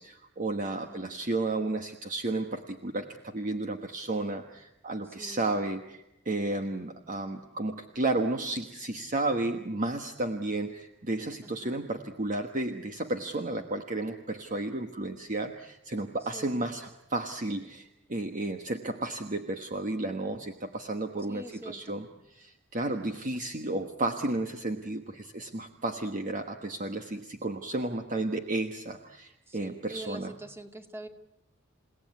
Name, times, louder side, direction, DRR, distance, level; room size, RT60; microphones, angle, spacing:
voice 1, 0.0-22.1 22.4-30.3, right 2 dB, 40° right, 6 dB, 1.3 m, -32 dB
voice 2, 0.7-1.1 5.0-5.6 11.4-11.9 16.2-16.7 21.3-22.0 29.5-31.1, right 1 dB, 10° right, 5 dB, 2.2 m, -45 dB
29.5 x 17.5 x 9.5 m, 0.88 s
head